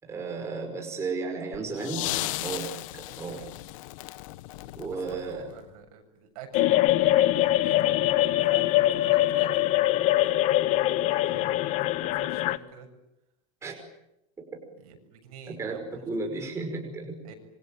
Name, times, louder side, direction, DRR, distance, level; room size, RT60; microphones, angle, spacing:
voice 1, 0.0-3.5 4.8-5.5 13.6-13.7 14.4-14.5 15.5-15.8 16.0-17.2, right 4 dB, 15° right, 2 dB, 5.4 m, -34 dB
sound 1, 1.5-5.7 6.9-7.0, left 18 dB, 60° left, 1.2 m, -36 dB
voice 2, 4.9-6.8 7.1-10.1 10.7-11.5 12.0-12.9 14.8-16.1 17.2-17.3, right 6 dB, 70° right, 5 dB, 7.4 m, -47 dB
sound 2, 6.5-12.6, left 15 dB, 35° left, 1.1 m, -23 dB
27.0 x 24.5 x 9.0 m, 0.87 s
supercardioid pair, 165°, 19 cm